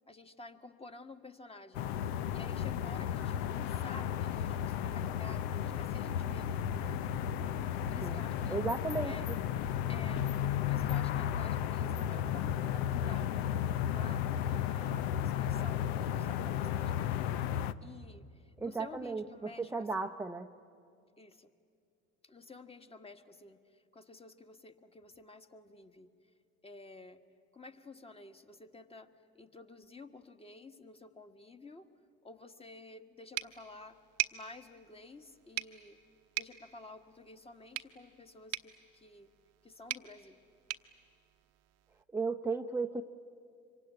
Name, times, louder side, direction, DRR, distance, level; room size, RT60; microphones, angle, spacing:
voice 1, 0.1-1.9 2.3-6.6 7.9-8.6 9.0-9.3 9.9-10.3 10.6-13.4 13.8-17.2 17.8-20.1 21.2-21.5 22.2-26.1 26.6-27.2 27.5-31.9 32.2-34.0 34.3-36.0 36.4-39.3 39.6-40.4, left 3 dB, 20° left, 7 dB, 1.5 m, -52 dB
sound 1, 1.7-17.7, left 10 dB, 75° left, 0.8 m, -34 dB
voice 2, 8.0-9.4 18.6-20.5 42.1-43.0, right 4 dB, 10° right, 2 dB, 0.7 m, -35 dB
sound 2, 33.3-42.0, right 16 dB, 55° right, 1.0 m, -43 dB
25.5 x 23.5 x 9.7 m, 2.4 s
hypercardioid pair, 80°, 31 cm